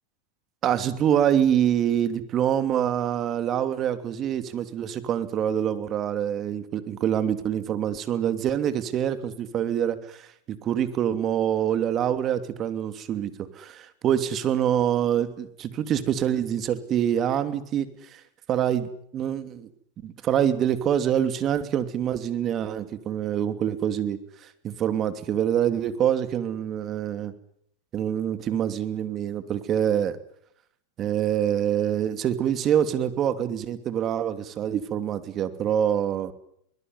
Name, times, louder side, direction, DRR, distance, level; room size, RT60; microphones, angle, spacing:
voice 1, 0.6-18.2 18.5-19.7 20.0-27.3 27.9-30.2 31.0-36.3, right 9 dB, 35° right, 10 dB, 2.9 m, -25 dB
23.5 x 21.0 x 9.7 m, 0.71 s
hypercardioid pair, 120°, 0 cm